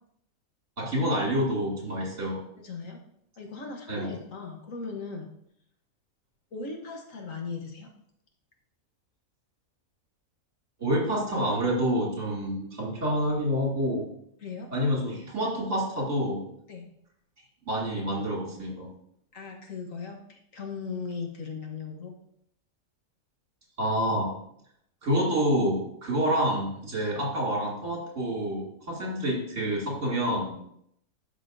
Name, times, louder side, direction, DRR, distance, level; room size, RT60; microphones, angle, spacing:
voice 1, 0.8-2.4 3.9-4.1 10.8-14.1 14.7-16.4 17.7-18.9 23.8-24.3 25.0-30.5, equal, 55° right, -3 dB, 2.8 m, -28 dB
voice 2, 2.6-3.0 3.4-5.3 6.5-7.9 14.4-14.7 16.7-16.8 19.3-22.1 30.5-30.6, left 4 dB, 65° left, 2 dB, 1.5 m, -38 dB
12.0 x 5.5 x 2.6 m, 0.72 s
omnidirectional pair, 1.5 m